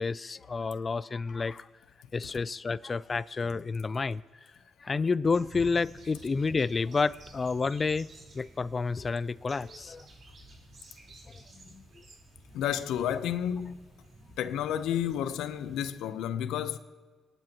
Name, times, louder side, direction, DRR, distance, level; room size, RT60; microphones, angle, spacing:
voice 1, 0.0-1.7 2.1-4.2 4.8-8.1 8.3-10.1 11.3-11.4 11.7-12.0, left 4 dB, 35° left, 0.4 m, -30 dB
sound 1, 5.3-15.9, right 2 dB, 50° right, 4.1 m, -52 dB
voice 2, 12.5-13.8 14.4-16.8, left 10 dB, 85° left, 0.7 m, -31 dB
30.0 x 11.0 x 3.0 m
cardioid pair, 90°, 0 cm